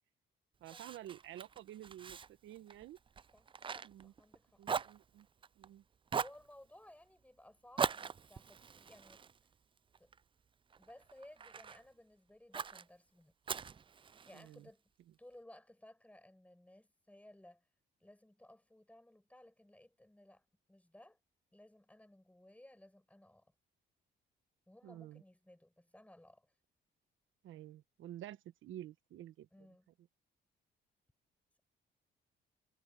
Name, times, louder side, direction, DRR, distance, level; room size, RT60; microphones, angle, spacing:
Fire, 0.6-4.4 4.6-5.7 6.1-6.5 7.8-10.2 10.7-11.8 12.5-12.8 13.5-14.5, right 6 dB, 25° right, 0.4 m, -41 dB
voice 1, 0.6-3.0 3.8-4.1 4.6-5.3 5.6-5.8 14.3-14.7 24.8-25.2 27.4-29.5, right 12 dB, 80° right, 1.3 m, -50 dB
voice 2, 3.3-4.6 6.2-9.2 10.0-10.1 10.8-13.3 14.1-14.8 15.2-17.7 18.0-21.2 21.5-23.5 24.7-26.5 29.5-29.9, left 1 dB, 5° left, 5.7 m, -59 dB
cardioid pair, 90°, 20 cm